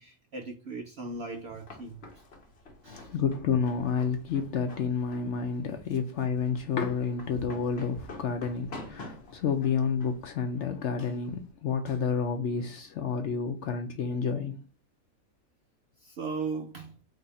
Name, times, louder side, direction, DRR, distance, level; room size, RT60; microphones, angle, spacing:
voice 1, 0.0-2.2 2.8-3.1 16.0-17.0, right 4 dB, 70° right, 0.6 m, -38 dB
sound 1, 1.1-11.5, left 2 dB, 50° left, 1.1 m, -48 dB
voice 2, 2.9-14.6, left 6 dB, 65° left, 0.7 m, -30 dB
3.9 x 2.7 x 4.1 m
omnidirectional pair, 1.6 m